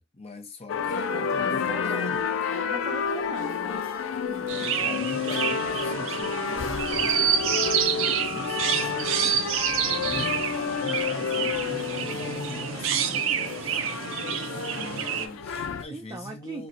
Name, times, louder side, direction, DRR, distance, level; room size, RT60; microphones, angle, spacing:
voice 1, 0.0-2.3 4.1-7.3 8.2-9.5 10.0-13.8 14.8-16.7, left 1 dB, 30° left, 0.6 m, -42 dB
sound 1, 0.7-15.9, left 6 dB, 90° left, 0.4 m, -30 dB
voice 2, 1.1-3.9 4.3-4.5 7.6-8.4 9.9-10.4 14.1-14.9 15.9-16.7, right 2 dB, 20° right, 0.4 m, -42 dB
Chirp tweet, 4.5-15.3, right 8 dB, 90° right, 0.4 m, -28 dB
4.2 x 2.1 x 2.5 m
head